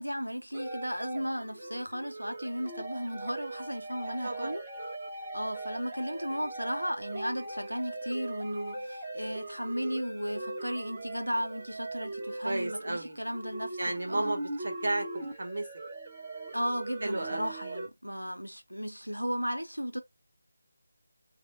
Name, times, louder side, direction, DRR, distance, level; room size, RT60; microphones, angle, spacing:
voice 1, 0.0-4.6 5.3-13.8 14.1-14.3 16.5-20.0, equal, 90° right, 1.0 m, -35 dB
sound 1, 0.5-17.9, right 2 dB, 25° right, 1.0 m, -40 dB
voice 2, 4.2-4.6 12.4-13.2 13.8-15.7 17.0-17.5, right 2 dB, 55° right, 1.2 m, -33 dB
3.3 x 2.2 x 3.9 m
figure-of-eight pair, 160°, 0 cm